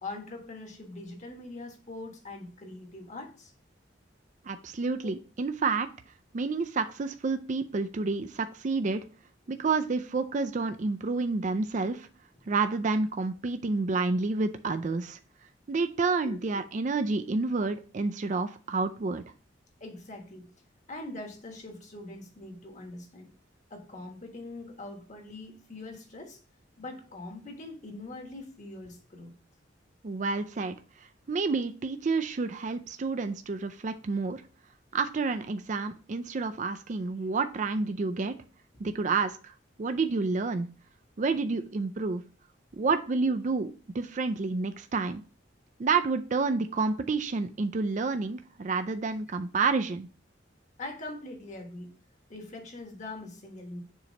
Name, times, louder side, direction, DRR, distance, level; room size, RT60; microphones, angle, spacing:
voice 1, 0.0-3.5 5.0-5.1 16.2-16.4 19.8-20.5 20.9-23.3 23.7-26.4 26.8-29.3 50.8-51.9 52.3-53.8, left 2 dB, 40° left, 3 dB, 1.4 m, -42 dB
voice 2, 4.4-5.9 6.3-9.0 9.5-12.1 12.5-15.2 15.7-19.2 30.0-30.8 31.3-34.4 34.9-38.4 38.8-40.7 41.2-42.2 42.7-45.2 45.8-50.1, right 4 dB, 40° right, 9 dB, 0.4 m, -29 dB
7.0 x 3.0 x 5.1 m, 0.38 s
head